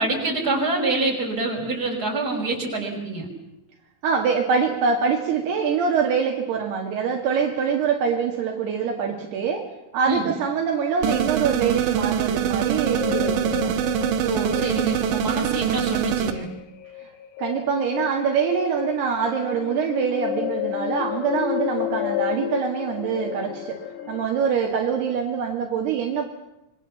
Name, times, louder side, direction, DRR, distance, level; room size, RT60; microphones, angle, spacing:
voice 1, 0.0-3.3 10.0-10.3 14.2-16.5, right 2 dB, 20° right, 0 dB, 5.8 m, -26 dB
voice 2, 4.0-9.7 9.9-13.7 17.4-23.8 24.1-26.3, right 6 dB, 70° right, 2 dB, 4.0 m, -24 dB
sound 1, 11.0-16.3, right 9 dB, 90° right, 3.8 m, -24 dB
sound 2, 12.8-24.3, left 13 dB, 65° left, 3.2 m, -31 dB
26.0 x 23.5 x 7.3 m, 0.90 s
omnidirectional pair, 4.9 m